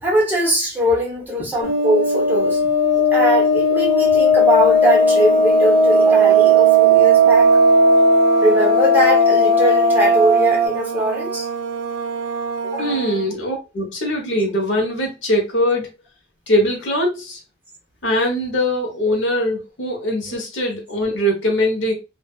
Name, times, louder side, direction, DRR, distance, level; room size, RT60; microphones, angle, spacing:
voice 1, 0.0-2.6 3.1-7.5 8.4-11.5 12.6-12.9, equal, 10° right, 0.8 m, -21 dB
sound 1, 1.6-10.7, equal, 35° left, 1.0 m, -15 dB
sound 2, 4.6-13.3, right 5 dB, 80° right, 0.4 m, -27 dB
voice 2, 12.8-15.9 16.5-17.4 18.0-21.9, left 1 dB, 70° left, 1.0 m, -21 dB
2.7 x 2.4 x 2.3 m
head